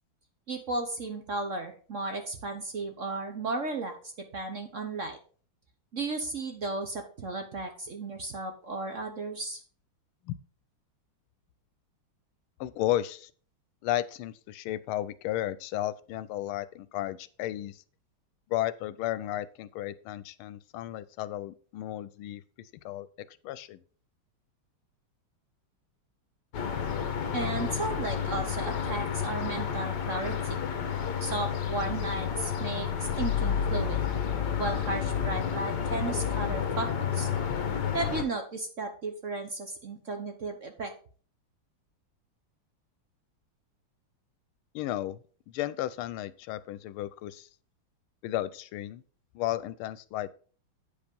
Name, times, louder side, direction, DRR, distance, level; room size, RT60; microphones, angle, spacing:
voice 1, 0.5-5.2 5.9-9.6 27.3-30.6 31.2-34.0 34.6-37.3 37.9-40.9, right 3 dB, 50° right, 5 dB, 1.0 m, -34 dB
voice 2, 12.6-13.3 13.8-17.8 18.5-23.8 44.7-45.2 45.5-47.5 48.2-49.0 49.3-50.3, left 14 dB, 85° left, 16 dB, 1.5 m, -34 dB
sound 1, 26.5-38.2, left 8 dB, 60° left, 1.5 m, -30 dB
8.5 x 5.2 x 5.2 m, 0.42 s
omnidirectional pair, 2.3 m